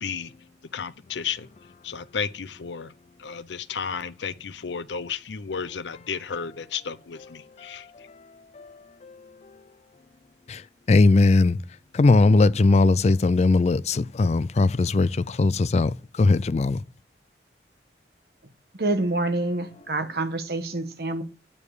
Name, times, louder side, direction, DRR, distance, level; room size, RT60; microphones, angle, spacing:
voice 1, 0.0-0.3 0.7-1.5 1.8-2.9 3.2-7.9, left 6 dB, 85° left, 0.6 m, -33 dB
voice 2, 10.9-11.6 11.9-15.9 16.2-16.8, left 3 dB, 40° left, 0.4 m, -19 dB
voice 3, 18.8-21.2, right 2 dB, 60° right, 1.3 m, -27 dB
8.5 x 7.2 x 4.9 m
head